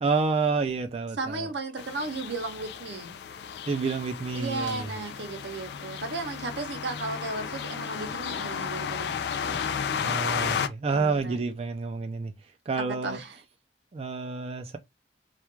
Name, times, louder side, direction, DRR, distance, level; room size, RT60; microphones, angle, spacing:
voice 1, 0.0-1.5 3.7-4.9 10.0-12.3 12.7-13.2 13.9-14.8, right 4 dB, 35° right, 0.3 m, -29 dB
voice 2, 1.2-3.2 4.3-9.6 10.9-11.4 12.8-13.4, right 3 dB, 75° right, 0.7 m, -35 dB
sound 1, 1.8-10.7, left 7 dB, 65° left, 0.3 m, -33 dB
2.3 x 2.2 x 2.9 m
head